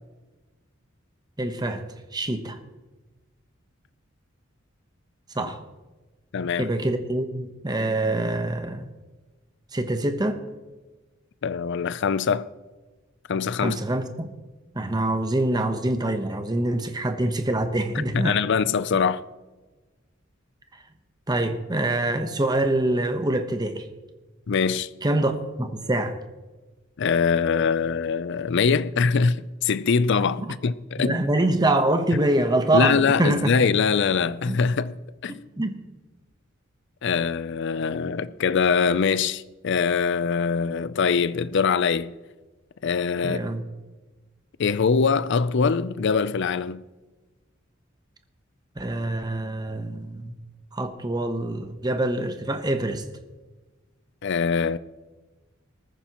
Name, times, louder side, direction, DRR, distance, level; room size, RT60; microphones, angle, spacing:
voice 1, 1.4-1.9 2.1-2.6 5.3-5.6 6.6-8.9 9.7-10.4 13.6-14.3 14.7-18.4 21.3-23.9 25.0-26.2 30.4-30.5 31.0-33.5 34.4-34.6 35.6-35.8 43.2-43.6 48.8-50.3 50.7-53.0, right 1 dB, 20° right, 1.0 m, -25 dB
voice 2, 6.3-6.7 11.4-12.5 13.3-13.8 18.1-19.2 24.5-24.9 27.0-31.2 32.7-35.0 35.2-35.4 37.0-42.1 42.8-43.4 44.6-46.8 54.2-54.8, left 5 dB, 60° left, 0.5 m, -23 dB
20.0 x 14.0 x 3.0 m
head